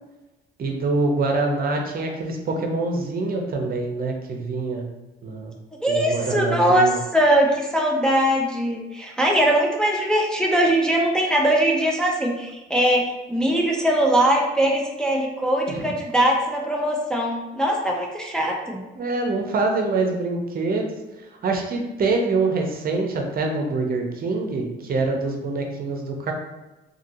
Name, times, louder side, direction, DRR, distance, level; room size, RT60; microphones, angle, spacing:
voice 1, 0.6-4.8 5.2-5.5 5.9-7.0 15.7-15.9 19.0-20.9 21.4-26.3, right 3 dB, 50° right, 2 dB, 0.6 m, -25 dB
voice 2, 5.8-18.8, right 1 dB, 5° left, -1 dB, 0.4 m, -21 dB
2.7 x 2.7 x 2.6 m, 1.1 s
cardioid pair, 90°, 20 cm